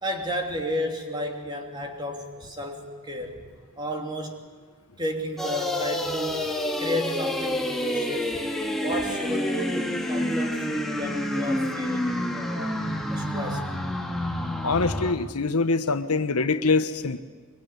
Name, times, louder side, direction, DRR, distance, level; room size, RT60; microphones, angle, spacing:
voice 1, 0.0-3.4 3.8-4.4 5.0-6.5 6.8-8.4 8.7-12.8 13.1-13.7, equal, 20° right, 3 dB, 3.0 m, -32 dB
sound 1, 5.4-15.1, left 1 dB, ahead, 1.9 m, -28 dB
voice 2, 14.6-17.2, left 3 dB, 85° left, 10 dB, 1.1 m, -24 dB
24.5 x 22.5 x 9.5 m, 1.5 s
head